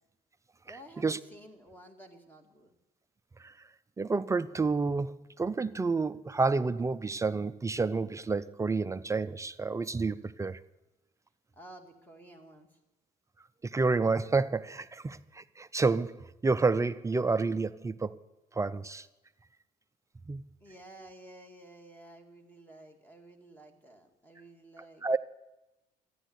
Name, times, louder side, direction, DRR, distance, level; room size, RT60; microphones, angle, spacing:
voice 1, 0.6-2.8 11.5-12.8 20.6-25.2, right 1 dB, 10° left, 2.2 m, -52 dB
voice 2, 4.0-10.6 13.6-18.1 18.5-19.1 20.3-20.4 25.0-25.2, right 4 dB, 20° right, 0.4 m, -29 dB
14.0 x 10.0 x 8.0 m
cardioid pair, 110°, 17 cm